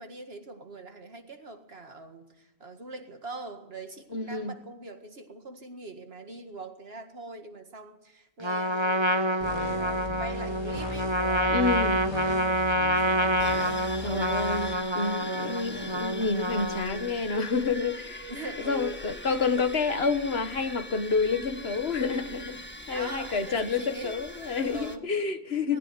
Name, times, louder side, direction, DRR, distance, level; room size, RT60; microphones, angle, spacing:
voice 1, 0.0-11.7 12.1-12.7 13.0-13.9 14.6-14.8 15.2-15.6 18.3-19.0 22.9-24.2 24.6-25.1 25.7-25.8, right 2 dB, 75° right, 2.2 m, -42 dB
voice 2, 4.1-4.5 11.5-12.0 14.0-14.7 15.0-18.3 18.7-22.6 22.9-25.8, left 4 dB, 80° left, 1.7 m, -29 dB
Trumpet, 8.4-17.1, equal, 25° right, 1.2 m, -27 dB
sound 1, 9.4-14.7, left 1 dB, 50° left, 2.7 m, -38 dB
sound 2, 13.4-25.0, left 1 dB, 10° left, 1.4 m, -42 dB
19.5 x 15.5 x 9.7 m
omnidirectional pair, 1.0 m